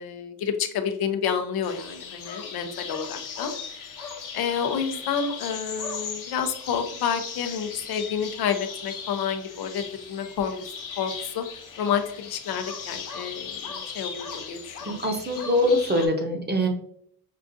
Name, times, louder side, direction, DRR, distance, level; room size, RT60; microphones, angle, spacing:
voice 1, 0.0-3.5 4.3-10.6 11.0-11.4 11.8-15.0, left 7 dB, 85° left, 7 dB, 0.7 m, -29 dB
sound 1, 1.6-16.1, left 6 dB, 60° left, 1.0 m, -38 dB
voice 2, 14.9-16.7, left 1 dB, 30° right, 3 dB, 0.9 m, -23 dB
5.6 x 2.4 x 2.6 m, 0.64 s
cardioid pair, 120°, 36 cm